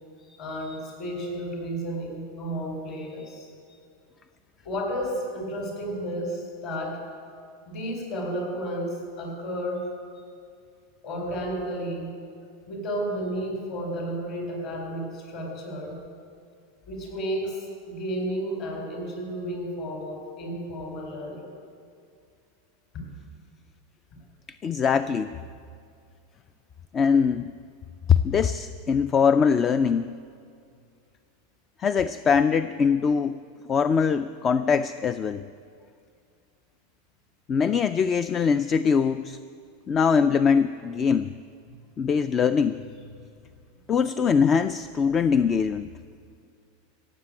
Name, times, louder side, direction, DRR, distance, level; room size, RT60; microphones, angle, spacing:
voice 1, 0.3-3.5 4.6-7.0 7.7-9.9 11.0-12.1 12.7-16.0 16.9-21.5 22.9-23.0, equal, 50° left, 1 dB, 4.4 m, -32 dB
voice 2, 24.6-25.3 26.9-27.5 28.1-30.1 31.8-33.4 33.7-35.4 37.5-39.4 39.9-41.3 42.0-42.8 43.9-45.9, left 6 dB, 25° left, 13 dB, 0.3 m, -22 dB
16.0 x 7.6 x 8.7 m, 2.4 s
supercardioid pair, 145°, 0 cm